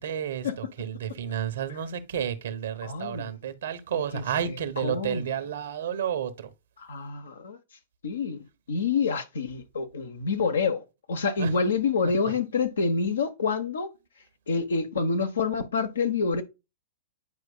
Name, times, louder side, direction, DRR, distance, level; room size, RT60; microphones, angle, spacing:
voice 1, 0.0-6.5 11.4-11.5 12.0-12.3, right 9 dB, 70° right, 1.1 m, -31 dB
voice 2, 2.8-3.4 3.9-5.3 6.8-7.6 8.0-13.9 14.5-16.4, left 4 dB, 80° left, 1.1 m, -28 dB
9.5 x 4.7 x 2.3 m
hypercardioid pair, 110°, 0 cm